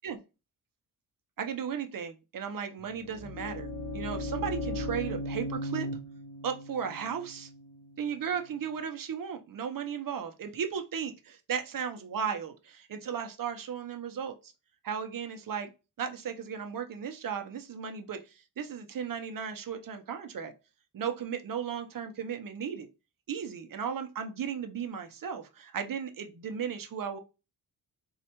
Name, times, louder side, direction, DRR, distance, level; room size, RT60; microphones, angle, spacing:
voice 1, 1.4-5.9 6.4-7.5 8.0-14.5 14.8-15.7 16.0-20.5 20.9-22.9 23.3-27.2, right 7 dB, 50° right, 6 dB, 0.7 m, -35 dB
sound 1, 2.8-8.7, left 1 dB, 35° left, 0.7 m, -37 dB
4.3 x 2.4 x 2.8 m, 0.29 s
wide cardioid pair, 125°, 42 cm